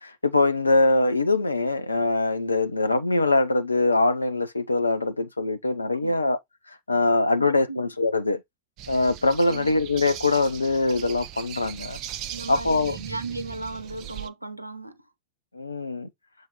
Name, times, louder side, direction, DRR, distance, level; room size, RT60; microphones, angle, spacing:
voice 1, 0.0-6.4 6.9-8.4 8.9-12.0 12.5-13.0 15.5-16.1, left 2 dB, 80° left, 0.8 m, -23 dB
voice 2, 7.4-7.8 9.5-9.8 12.3-15.0, right 3 dB, 85° right, 0.8 m, -36 dB
sound 1, 8.8-14.3, right 11 dB, 40° right, 0.6 m, -39 dB
7.5 x 3.1 x 4.3 m
figure-of-eight pair, 90°, 0 cm